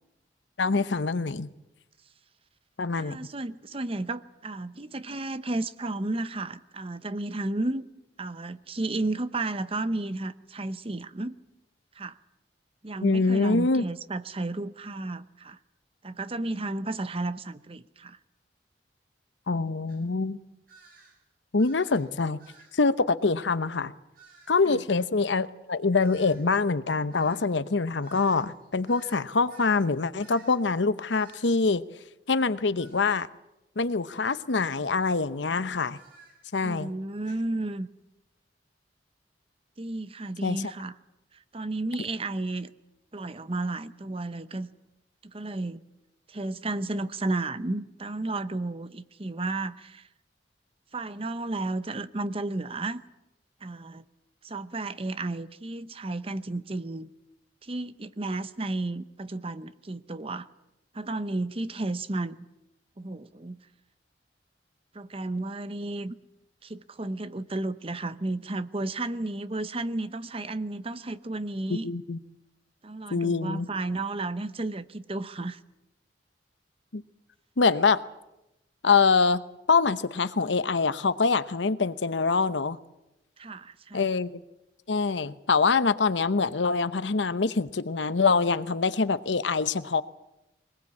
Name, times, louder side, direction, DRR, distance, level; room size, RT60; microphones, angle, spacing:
voice 1, 0.6-1.5 2.8-3.2 13.0-13.8 19.5-20.4 21.5-22.4 22.7-23.9 24.5-31.8 32.3-33.3 33.8-36.0 36.5-36.9 40.4-40.7 71.7-72.2 73.1-73.7 76.9-77.0 77.6-78.0 78.8-79.4 79.7-82.8 83.9-84.4 84.9-90.0, left 4 dB, 90° left, 14 dB, 0.9 m, -25 dB
voice 2, 3.0-7.9 8.2-11.4 12.0-12.2 12.8-15.6 16.0-18.2 24.7-24.8 36.6-37.9 39.8-40.9 41.5-42.7 43.1-44.7 45.2-45.8 46.3-50.1 50.9-53.0 53.6-54.0 54.4-57.1 57.6-60.5 60.9-62.4 63.0-63.6 64.9-66.2 66.6-71.9 72.8-75.6 83.4-84.1, right 2 dB, 30° right, 13 dB, 0.8 m, -33 dB
sound 1, 19.9-20.0 20.7-21.2 21.6-22.1 22.4-22.8 24.1-24.6 26.0-29.9 30.2-30.7 31.1-31.5 32.8-33.1 34.1-34.4 35.9-36.4, right 3 dB, 55° right, 5.5 m, -54 dB
22.0 x 20.0 x 8.5 m, 0.92 s
head